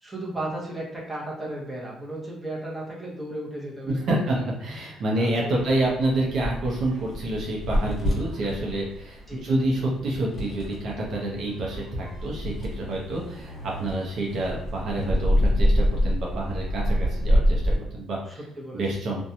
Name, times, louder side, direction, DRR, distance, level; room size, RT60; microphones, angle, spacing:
voice 1, 0.0-4.2 5.2-5.6 9.3-9.5 18.6-18.8, right 1 dB, 10° right, -5 dB, 0.8 m, -35 dB
voice 2, 3.9-18.4 18.7-19.2, right 1 dB, 55° right, -3 dB, 0.6 m, -28 dB
sound 1, 5.6-17.8, equal, 25° left, 1.2 m, -27 dB
2.5 x 2.2 x 2.7 m, 0.77 s
cardioid pair, 120°, 0 cm